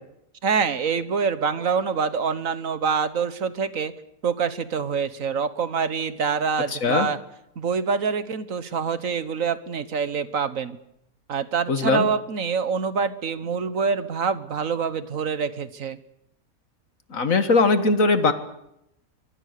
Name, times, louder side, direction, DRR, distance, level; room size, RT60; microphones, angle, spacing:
voice 1, 0.4-3.9 4.2-7.2 7.6-10.8 11.3-16.0, right 6 dB, 65° right, 13 dB, 1.6 m, -25 dB
voice 2, 11.7-12.1 17.1-18.3, left 3 dB, 65° left, 9 dB, 1.9 m, -20 dB
24.5 x 23.5 x 6.7 m, 0.81 s
omnidirectional pair, 1.6 m